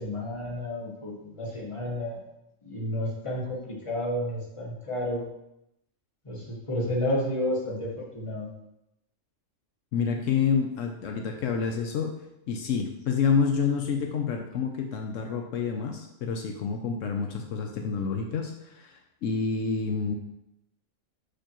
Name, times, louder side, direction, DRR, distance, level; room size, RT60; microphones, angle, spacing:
voice 1, 0.0-2.2 2.6-5.2 6.2-8.5, left 1 dB, 25° left, -3 dB, 1.4 m, -31 dB
voice 2, 9.9-12.1 12.5-20.2, left 6 dB, 80° left, 3 dB, 1.0 m, -28 dB
6.7 x 4.8 x 3.0 m, 0.85 s
omnidirectional pair, 1.3 m